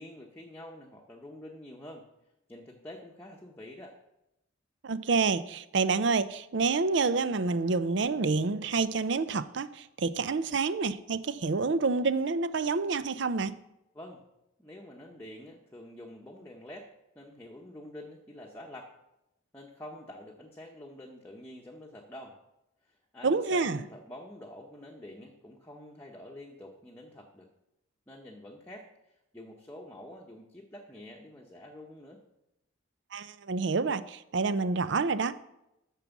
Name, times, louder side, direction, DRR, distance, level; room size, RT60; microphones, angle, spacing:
voice 1, 0.0-2.1 2.5-4.0 13.9-14.2 14.6-16.9 17.1-18.9 19.5-22.4 22.8-27.5 28.1-28.9 29.3-32.2, left 1 dB, 10° left, -1 dB, 0.9 m, -47 dB
voice 2, 4.8-13.6 23.2-23.8 33.1-35.4, right 4 dB, 60° right, 14 dB, 0.5 m, -28 dB
9.0 x 6.1 x 7.1 m, 0.88 s
head